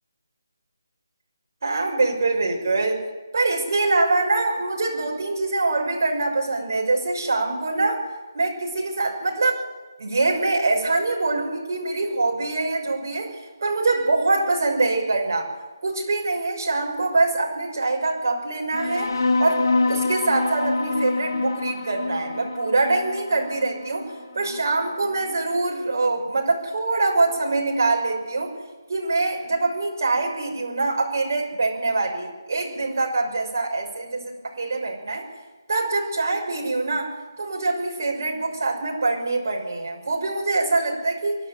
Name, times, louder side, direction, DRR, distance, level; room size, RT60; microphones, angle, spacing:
voice 1, 1.6-3.0 3.3-8.0 8.3-9.7 10.0-13.3 13.6-15.5 15.8-19.1 19.4-28.5 28.9-35.2 35.7-41.4, right 3 dB, 50° right, 0 dB, 6.0 m, -24 dB
sound 1, 18.7-25.7, left 3 dB, 70° left, 3.5 m, -26 dB
23.0 x 12.0 x 9.4 m, 1.2 s
hypercardioid pair, 170°, 2 cm